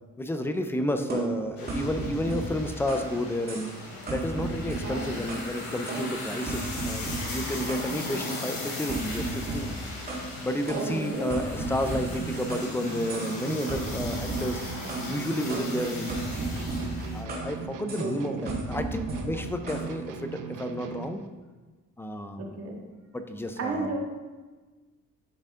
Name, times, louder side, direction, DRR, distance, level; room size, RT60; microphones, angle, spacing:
voice 1, 0.2-3.7 4.1-9.8 10.4-14.6 15.0-16.2 17.1-21.2 22.0-22.4 23.1-23.9, left 1 dB, 5° left, 7 dB, 0.4 m, -31 dB
sound 1, 1.1-3.1 3.5-3.8 4.1-5.5 5.9-7.9 8.3-8.5 8.9-10.3 10.7-12.7 13.1-13.4 13.7-15.1 15.5-17.5 17.9-18.1 18.5-19.9, right 2 dB, 30° right, 1.8 m, -35 dB
sound 2, 1.6-17.2, left 2 dB, 85° left, 2.9 m, -38 dB
voice 2, 4.8-5.2 10.7-11.4 18.0-18.5 22.4-22.8 23.6-24.0, right 3 dB, 45° right, 0 dB, 1.7 m, -33 dB
sound 3, 11.9-21.3, right 6 dB, 65° right, 0.8 m, -39 dB
11.5 x 6.6 x 3.6 m, 1.3 s
cardioid pair, 180°, 34 cm